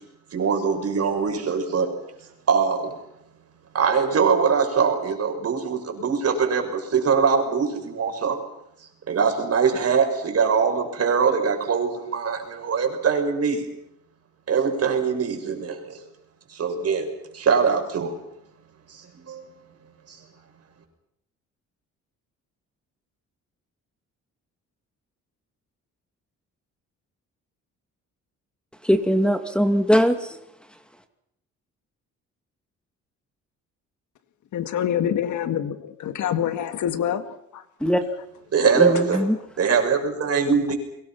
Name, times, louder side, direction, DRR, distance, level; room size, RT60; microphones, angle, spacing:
voice 1, 0.3-1.9 2.5-2.9 3.7-8.4 9.1-13.7 14.5-16.0 16.5-17.1 17.3-18.1 18.9-19.5 20.1-20.2 38.5-39.2 39.6-40.7, right 6 dB, 55° right, 6.6 m, -22 dB
voice 2, 28.8-30.3 37.8-38.0 38.8-39.4, equal, 5° left, 2.5 m, -20 dB
voice 3, 34.5-37.6, left 9 dB, 75° left, 2.1 m, -26 dB
29.5 x 23.5 x 5.9 m
cardioid pair, 90°, 30 cm